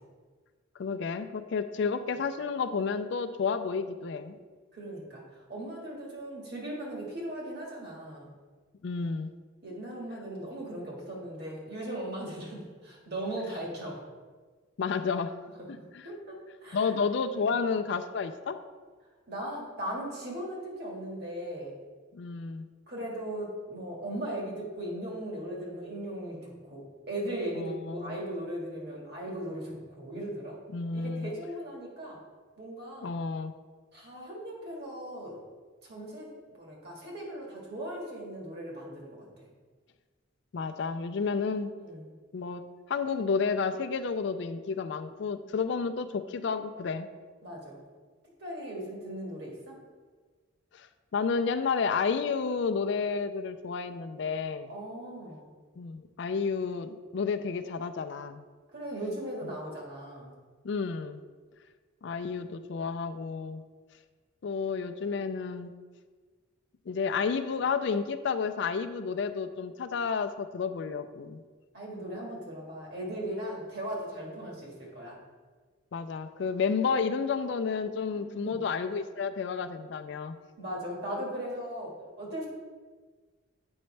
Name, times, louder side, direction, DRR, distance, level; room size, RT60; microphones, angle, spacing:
voice 1, 0.8-4.4 8.8-9.3 14.8-15.3 15.7-16.1 16.7-18.6 22.1-22.7 27.6-28.2 30.7-31.3 33.0-33.5 40.5-41.7 42.3-42.6 42.9-47.1 50.7-50.9 51.1-54.7 55.8-58.4 60.6-61.2 62.0-63.6 64.4-65.7 66.9-71.4 75.9-80.4, left 5 dB, 60° left, 10 dB, 0.4 m, -31 dB
voice 2, 4.7-8.3 9.6-14.0 16.0-16.4 16.6-16.9 17.3-17.5 19.3-21.8 22.9-30.6 30.9-32.2 32.6-33.1 33.9-35.4 35.8-36.3 36.6-39.3 41.8-42.1 47.4-47.8 48.4-49.8 54.7-55.5 58.7-60.3 71.7-75.2 78.1-78.7 80.6-82.5, right 1 dB, 55° right, -3 dB, 1.8 m, -38 dB
7.9 x 5.2 x 3.3 m, 1.4 s
head